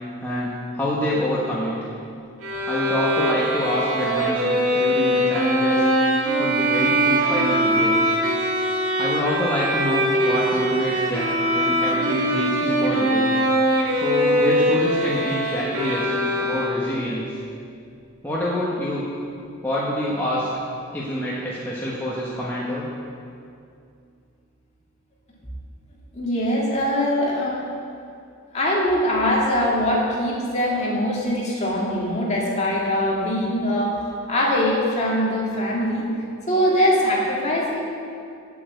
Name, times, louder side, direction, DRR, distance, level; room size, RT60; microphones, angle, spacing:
voice 1, 0.2-1.7 2.7-5.9 6.2-7.9 9.0-13.3 13.9-17.3 18.2-19.0 19.6-20.5 20.9-22.9, equal, 10° left, -7 dB, 1.3 m, -26 dB
Bowed string instrument, 2.4-17.1, equal, 75° right, 1.8 m, -22 dB
voice 2, 26.1-27.6 28.5-34.0 34.3-36.0 36.5-37.8, equal, 30° left, -4 dB, 2.1 m, -22 dB
8.8 x 8.3 x 8.0 m, 2.4 s
head